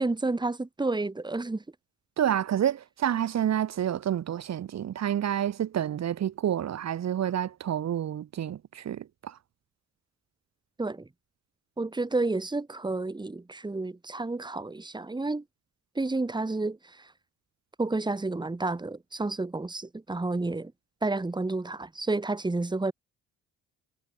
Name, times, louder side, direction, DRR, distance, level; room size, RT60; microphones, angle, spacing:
voice 1, 0.0-1.6 10.8-11.1 11.8-15.4 16.0-17.1 17.8-20.7 21.0-22.9, right 2 dB, 15° right, 2.3 m, -30 dB
voice 2, 2.2-9.4, right 10 dB, 60° right, 2.1 m, -29 dB
cardioid pair, 90°, 30 cm